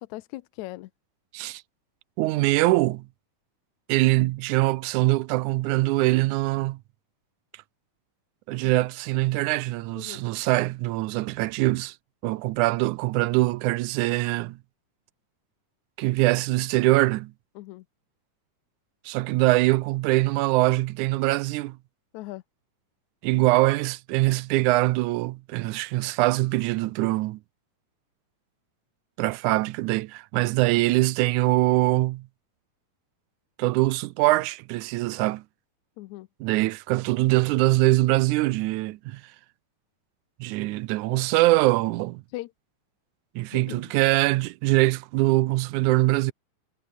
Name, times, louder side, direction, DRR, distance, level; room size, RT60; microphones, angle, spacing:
voice 1, 0.1-0.9 8.6-8.7 10.0-10.2 17.6-17.8 22.1-22.4 36.0-36.3 42.3-42.5 43.5-43.8, left 18 dB, 80° left, 1.8 m, -38 dB
voice 2, 2.2-3.1 3.9-6.8 8.5-12.0 12.2-14.6 16.0-17.3 19.1-21.8 23.2-27.4 29.2-32.3 33.6-35.4 36.4-39.2 40.4-42.2 43.4-46.3, right 19 dB, 80° right, 1.9 m, -23 dB
omnidirectional pair, 4.0 m